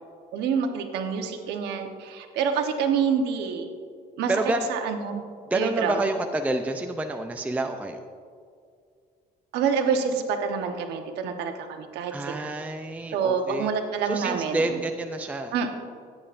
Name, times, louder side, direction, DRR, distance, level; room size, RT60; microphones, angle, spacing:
voice 1, 0.3-3.7 4.2-4.3 4.7-5.2 5.5-6.1 9.5-12.5 13.1-14.7 15.5-15.7, right 6 dB, 80° right, 5 dB, 1.1 m, -27 dB
voice 2, 4.3-4.7 5.5-8.0 12.1-13.7 14.0-15.5, right 2 dB, 10° right, 5 dB, 0.5 m, -28 dB
16.5 x 8.7 x 2.6 m, 2.2 s
cardioid pair, 110°, 17 cm